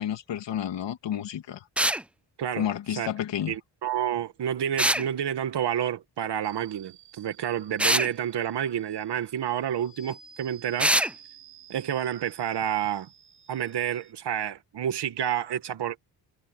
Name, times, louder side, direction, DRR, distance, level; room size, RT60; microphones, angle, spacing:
voice 1, 0.0-1.6 2.6-3.5, left 10 dB, 75° left, 2.6 m, -30 dB
sound 1, 1.8-2.0 4.8-5.1 7.8-8.1 10.8-11.1, right 1 dB, 5° right, 0.3 m, -23 dB
voice 2, 3.5-11.0 11.7-13.1 13.5-16.0, right 10 dB, 65° right, 1.9 m, -29 dB
sound 2, 6.4-14.1, right 6 dB, 30° right, 7.7 m, -53 dB
wide cardioid pair, 140°, 43 cm